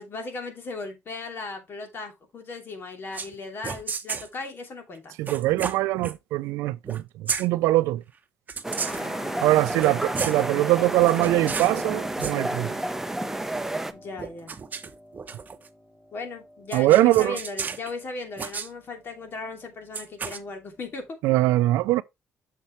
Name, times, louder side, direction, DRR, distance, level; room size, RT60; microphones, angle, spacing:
voice 1, 0.0-5.1 8.8-10.0 13.9-14.5 16.1-21.2, left 3 dB, 50° left, 2.7 m, -37 dB
sound 1, 3.1-3.3 3.6-4.3 5.3-6.2 6.8-7.5 8.5-9.1 9.7-10.5 11.0-11.8 12.1-12.4 14.2-15.7 16.7-17.9 18.4-18.7 19.9-20.4, right 5 dB, 40° right, 0.9 m, -33 dB
voice 2, 5.2-8.0 9.4-12.8 16.7-17.4 21.2-22.0, right 17 dB, 90° right, 0.4 m, -22 dB
sound 2, 8.6-13.9, right 1 dB, 5° right, 0.8 m, -31 dB
Piano, 11.2-19.6 20.0-21.1, left 1 dB, 20° left, 1.5 m, -46 dB
7.2 x 6.8 x 3.1 m
cardioid pair, 80°, 5 cm